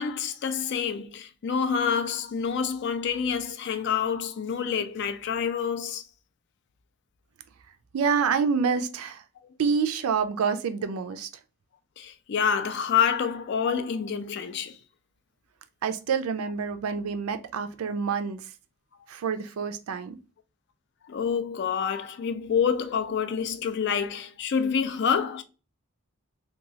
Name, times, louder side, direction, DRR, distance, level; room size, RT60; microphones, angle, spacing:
voice 1, 0.0-6.0 12.0-14.8 21.1-25.4, left 7 dB, 50° left, 0.3 m, -27 dB
voice 2, 7.9-9.2 9.6-11.3 15.8-18.4 19.1-20.2, right 6 dB, 80° right, 0.4 m, -27 dB
2.9 x 2.3 x 2.7 m
head